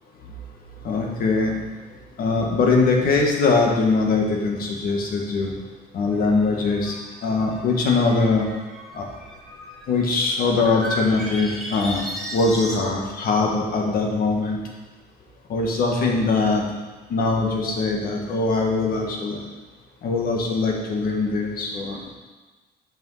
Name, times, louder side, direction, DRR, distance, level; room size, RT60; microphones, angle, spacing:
voice 1, 0.8-1.5 2.2-5.5 5.9-6.9 7.2-8.5 8.9-9.1 9.9-14.6 15.5-16.6 17.1-19.4 20.0-22.1, left 3 dB, 60° left, 0 dB, 1.8 m, -22 dB
sound 1, 6.1-12.8, right 1 dB, ahead, 1.6 m, -36 dB
7.4 x 5.3 x 5.5 m, 1.3 s
cardioid pair, 110°, 17 cm